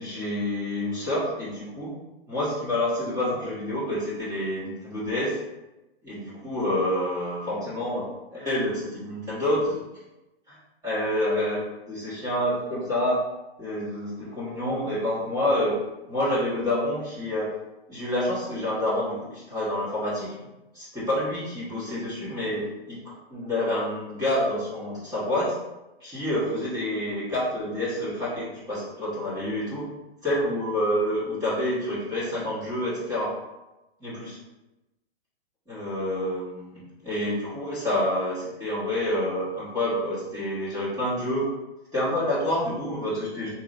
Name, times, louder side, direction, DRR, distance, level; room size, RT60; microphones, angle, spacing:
voice 1, 0.0-1.9 2.3-5.4 6.0-9.8 10.5-10.6 10.8-11.6 11.9-13.2 13.6-15.8 16.1-17.5 17.9-20.3 20.7-23.0 23.3-25.5 26.0-29.8 30.2-33.3 34.0-34.4 35.7-41.5 41.9-43.5, left 1 dB, 10° right, -11 dB, 1.4 m, -28 dB
3.8 x 2.8 x 2.6 m, 1.0 s
hypercardioid pair, 135°, 32 cm